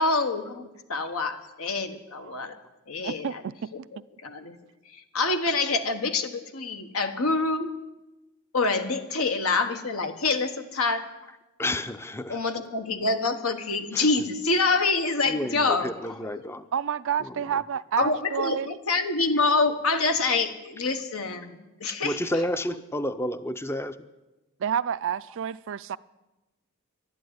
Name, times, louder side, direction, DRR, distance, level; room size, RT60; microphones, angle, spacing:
voice 1, 0.0-2.6 2.9-3.4 4.2-4.6 4.8-7.7 8.5-11.1 12.3-15.9 16.3-16.5 18.0-22.2, left 3 dB, 85° left, 1.4 m, -26 dB
voice 2, 3.0-3.7 16.7-18.7 24.6-26.0, right 8 dB, 60° right, 0.4 m, -29 dB
voice 3, 11.6-12.4 13.9-14.1 15.3-16.7 17.2-17.6 22.0-24.0, left 1 dB, 10° left, 0.5 m, -30 dB
12.0 x 10.5 x 9.4 m
head